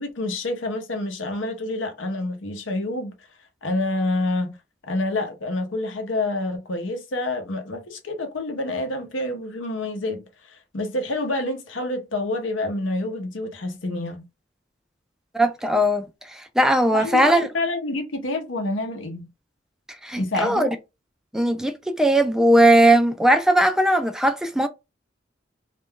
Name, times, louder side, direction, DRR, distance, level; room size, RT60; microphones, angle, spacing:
voice 1, 0.0-3.1 3.6-4.6 4.9-14.3 16.9-19.3 20.2-20.8, left 2 dB, 85° left, 0.8 m, -28 dB
voice 2, 15.3-16.0 16.6-17.5 20.0-20.7 21.3-24.7, right 1 dB, 5° right, 0.3 m, -18 dB
2.5 x 2.2 x 3.6 m
head